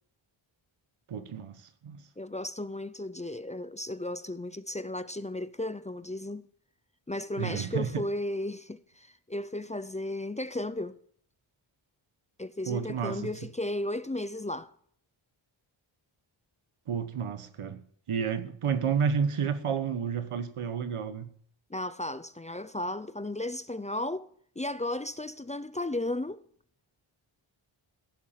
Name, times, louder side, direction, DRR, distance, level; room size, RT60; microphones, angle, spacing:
voice 1, 1.1-2.0 7.4-8.0 12.7-13.3 16.9-21.3, right 7 dB, 85° right, 1.3 m, -31 dB
voice 2, 2.2-6.5 7.1-11.0 12.4-14.7 21.7-24.3 24.6-26.4, left 1 dB, 15° left, 0.5 m, -34 dB
16.0 x 7.2 x 7.4 m
wide cardioid pair, 90°, 50 cm